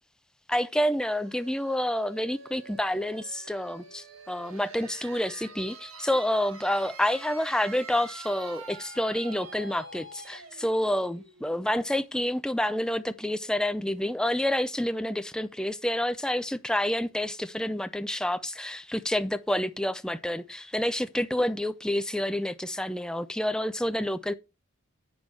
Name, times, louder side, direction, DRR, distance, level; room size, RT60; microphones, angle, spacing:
voice 1, 0.5-24.3, left 1 dB, 5° left, 0.4 m, -28 dB
sound 1, 1.1-12.6, right 3 dB, 80° right, 1.6 m, -47 dB
8.9 x 6.2 x 4.6 m
head